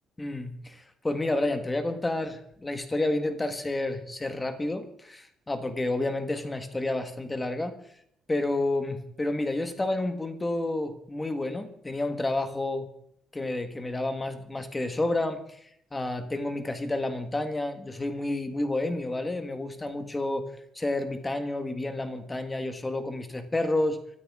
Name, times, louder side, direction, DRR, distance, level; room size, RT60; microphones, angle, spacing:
voice 1, 0.2-7.7 8.3-12.9 13.3-15.6 15.9-20.5 20.7-24.0, left 2 dB, 10° left, 8 dB, 1.6 m, -30 dB
24.5 x 13.5 x 3.7 m, 0.69 s
cardioid pair, 170°, 0 cm